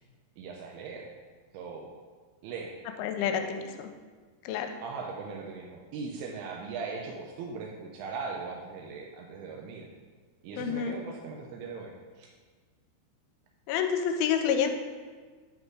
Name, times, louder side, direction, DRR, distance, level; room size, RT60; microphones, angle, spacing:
voice 1, 0.4-1.1 1.5-1.9 2.4-2.7 3.3-3.4 4.8-9.9 10.4-12.3 14.5-14.7, right 4 dB, 85° right, 0 dB, 2.2 m, -39 dB
voice 2, 3.0-3.9 4.5-4.8 10.6-11.0 13.7-14.7, left 7 dB, 85° left, 6 dB, 3.0 m, -28 dB
11.0 x 4.1 x 4.7 m, 1.5 s
omnidirectional pair, 5.4 m